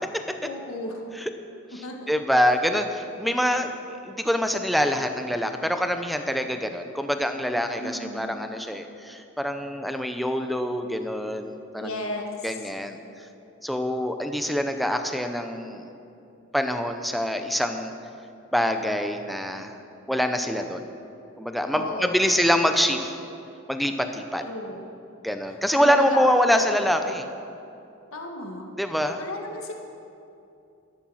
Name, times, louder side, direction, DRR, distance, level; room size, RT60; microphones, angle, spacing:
voice 1, 0.4-1.1 1.8-2.1 7.8-8.3 11.8-12.7 21.7-22.4 24.4-24.8 25.7-26.3 28.1-28.6 29.2-29.7, left 1 dB, 70° left, 1 dB, 1.8 m, -34 dB
voice 2, 2.1-11.9 12.4-13.0 13.6-15.8 16.5-17.9 18.5-19.7 20.1-20.9 21.4-23.1 23.7-24.4 25.2-27.3 28.8-29.2, equal, ahead, 6 dB, 0.6 m, -25 dB
13.0 x 11.0 x 6.3 m, 2.7 s
head